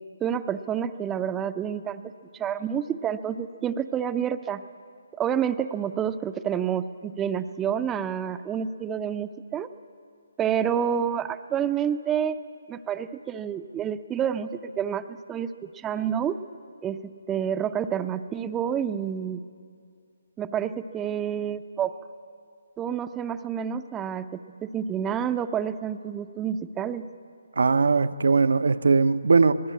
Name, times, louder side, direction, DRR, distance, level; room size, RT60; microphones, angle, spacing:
voice 1, 0.2-2.0 2.3-4.6 5.2-9.7 10.4-12.4 12.7-16.4 16.8-19.4 20.4-22.0 22.8-27.1, right 8 dB, 10° right, 0.7 m, -29 dB
voice 2, 27.6-29.6, right 4 dB, 60° right, 0.8 m, -20 dB
25.5 x 19.5 x 8.5 m
figure-of-eight pair, 140°, 0 cm